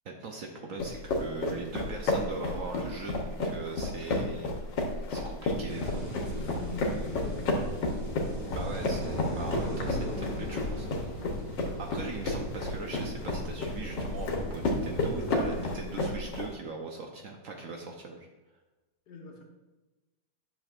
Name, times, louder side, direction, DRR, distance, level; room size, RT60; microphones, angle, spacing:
voice 1, 0.0-4.5 5.1-6.0 8.5-11.0 11.8-18.3, right 3 dB, 60° right, 2 dB, 1.0 m, -40 dB
sound 1, 0.8-16.5, left 2 dB, 85° left, 1.7 m, -32 dB
voice 2, 5.5-6.0 6.3-7.6 19.1-19.4, left 3 dB, 70° left, 1 dB, 1.6 m, -43 dB
sound 2, 5.7-15.7, equal, 35° right, 2.2 m, -38 dB
10.5 x 6.3 x 2.5 m, 1.1 s
omnidirectional pair, 1.9 m